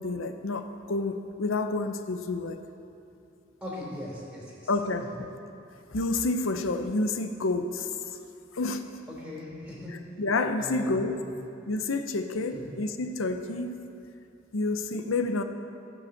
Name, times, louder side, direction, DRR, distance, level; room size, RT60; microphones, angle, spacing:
voice 1, 0.0-2.6 4.7-5.3 5.9-7.9 8.5-8.8 10.2-11.2 11.7-13.8 14.5-15.4, left 3 dB, 80° left, 8 dB, 0.7 m, -29 dB
voice 2, 3.6-4.7 5.1-5.2 9.1-9.9 10.6-10.9 11.2-11.3 12.5-12.6, left 1 dB, 5° right, -5 dB, 3.3 m, -39 dB
16.0 x 5.5 x 7.1 m, 2.7 s
head